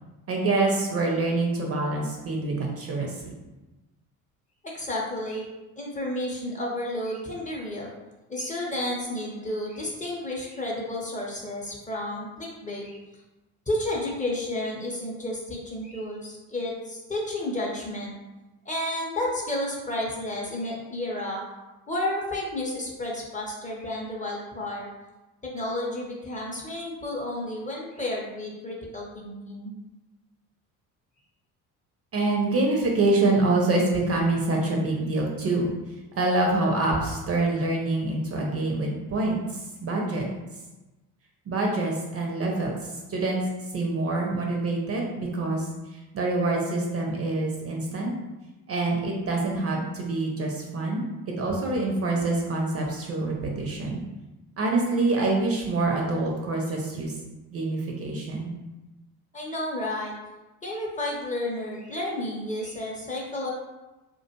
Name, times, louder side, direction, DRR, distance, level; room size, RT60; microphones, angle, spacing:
voice 1, 0.3-3.3 32.1-35.7 36.2-40.3 41.5-42.8 43.1-43.4 43.7-45.7 46.1-48.1 48.7-51.0 51.4-54.0 54.6-57.1 57.5-58.5, right 2 dB, 35° right, 0 dB, 0.5 m, -26 dB
voice 2, 4.6-5.5 5.8-7.9 8.3-13.0 13.7-18.1 18.7-21.4 21.9-24.9 25.4-29.8 59.3-60.1 60.6-63.5, left 1 dB, 20° left, -3 dB, 0.6 m, -31 dB
2.4 x 2.2 x 2.8 m, 1.1 s
hypercardioid pair, 60°, 44 cm